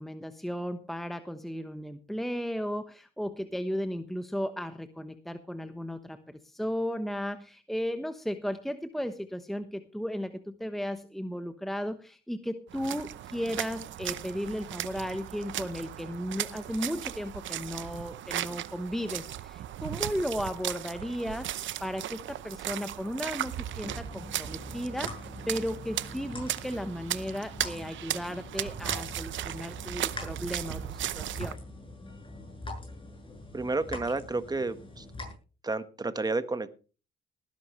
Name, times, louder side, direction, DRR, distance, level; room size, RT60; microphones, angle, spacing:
voice 1, 0.0-25.2 25.5-31.6, equal, ahead, 9 dB, 1.1 m, -35 dB
sound 1, 12.7-31.5, right 12 dB, 70° right, 0.8 m, -37 dB
sound 2, 23.8-35.3, left 1 dB, 25° left, 7.9 m, -43 dB
voice 2, 33.5-35.0 35.6-36.7, right 3 dB, 20° right, 11 dB, 1.4 m, -31 dB
19.0 x 11.0 x 3.2 m, 0.35 s
cardioid pair, 90°, 20 cm